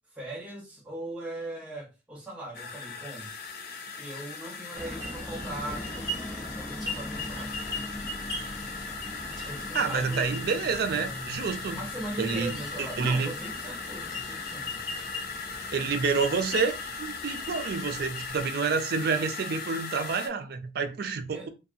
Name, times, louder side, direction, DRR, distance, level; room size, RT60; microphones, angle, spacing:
voice 1, 0.1-3.3 4.0-7.5 9.5-10.3 11.4-14.9 21.3-21.5, right 1 dB, 5° right, 0.9 m, -40 dB
sound 1, 2.5-20.3, left 4 dB, 55° left, 0.4 m, -39 dB
sound 2, 4.7-18.5, left 1 dB, 20° left, 0.7 m, -39 dB
voice 2, 9.7-11.8 12.2-12.5 13.0-13.3 15.7-21.5, right 5 dB, 55° right, 0.4 m, -28 dB
2.6 x 2.3 x 2.5 m
head